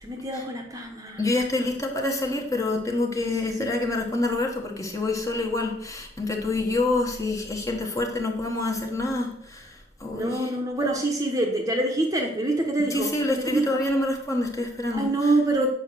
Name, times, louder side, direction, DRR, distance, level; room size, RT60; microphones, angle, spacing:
voice 1, 0.0-1.2 3.6-3.7 10.1-13.8 14.9-15.7, right 2 dB, 15° right, 2 dB, 1.1 m, -26 dB
voice 2, 1.2-10.5 12.9-15.3, left 2 dB, 15° left, 2 dB, 1.3 m, -27 dB
8.2 x 5.7 x 6.8 m, 0.71 s
head